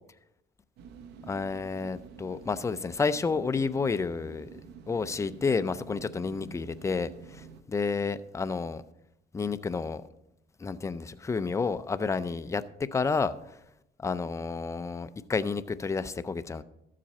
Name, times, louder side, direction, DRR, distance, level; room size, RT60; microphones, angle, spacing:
sound 1, 0.8-7.6, right 6 dB, 85° right, 0.8 m, -49 dB
voice 1, 1.3-4.6 4.9-8.8 9.3-10.0 10.6-12.6 12.9-13.3 14.0-16.6, left 4 dB, 15° left, 13 dB, 0.5 m, -30 dB
13.0 x 7.5 x 4.2 m, 0.81 s
cardioid pair, 110°, 17 cm